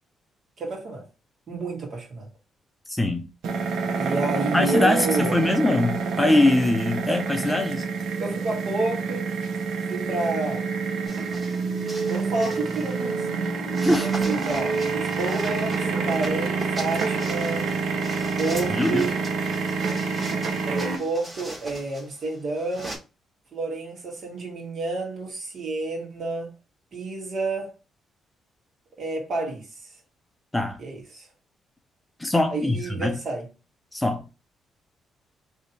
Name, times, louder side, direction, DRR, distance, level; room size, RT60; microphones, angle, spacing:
voice 1, 0.6-1.0 1.5-2.3 3.9-5.4 8.2-9.3 9.9-10.6 12.0-13.3 14.0-17.7 18.4-19.1 20.6-22.9 23.5-26.5 26.9-27.7 29.0-29.6 30.8-31.3 32.5-33.5, right 3 dB, 55° right, 1.7 m, -29 dB
voice 2, 2.9-3.3 4.5-7.9 13.8-14.1 18.7-19.1 30.5-30.8 32.2-33.2 33.9-34.2, left 2 dB, 10° left, 0.6 m, -22 dB
sound 1, 3.4-21.0, right 4 dB, 70° right, 0.8 m, -27 dB
sound 2, 11.1-13.1 13.7-23.0, right 1 dB, 15° right, 1.5 m, -40 dB
3.2 x 2.8 x 4.1 m
cardioid pair, 90°, 0 cm